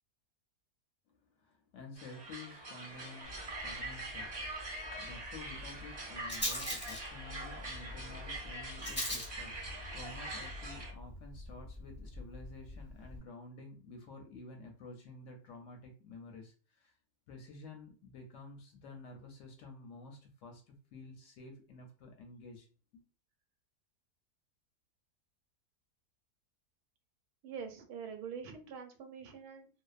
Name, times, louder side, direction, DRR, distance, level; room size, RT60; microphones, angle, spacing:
voice 1, 1.4-4.6 4.9-16.9 17.3-22.7 22.9-23.1, left 2 dB, 65° left, 2 dB, 0.8 m, -51 dB
sound 1, 2.0-10.9, right 2 dB, 30° right, 0.5 m, -43 dB
Rattle, 3.2-13.2, left 1 dB, 10° left, 0.6 m, -44 dB
voice 2, 27.4-29.7, right 6 dB, 90° right, 6 dB, 1.1 m, -45 dB
2.7 x 2.0 x 2.3 m, 0.36 s
omnidirectional pair, 1.6 m